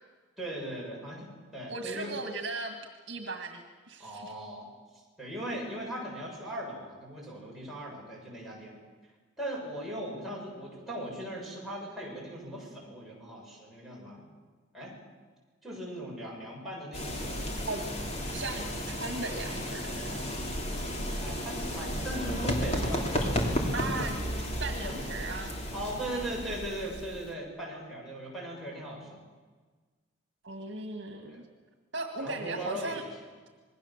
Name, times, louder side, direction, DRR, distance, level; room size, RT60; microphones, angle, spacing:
voice 1, 0.4-2.1 4.0-8.8 9.4-14.2 14.7-14.9 15.6-17.4 21.2-23.9 24.8-25.1 25.7-29.2 31.3-31.4 32.2-33.1, right 1 dB, ahead, -5 dB, 7.7 m, -39 dB
voice 2, 1.7-2.8 3.1-4.3 17.6-17.8 18.3-20.2 23.7-24.2 24.6-25.6 30.4-31.4 31.9-33.0, right 3 dB, 60° right, 5 dB, 2.1 m, -37 dB
sound 1, 16.9-27.3, equal, 30° left, 3.2 m, -33 dB
27.0 x 21.0 x 7.5 m, 1.4 s
head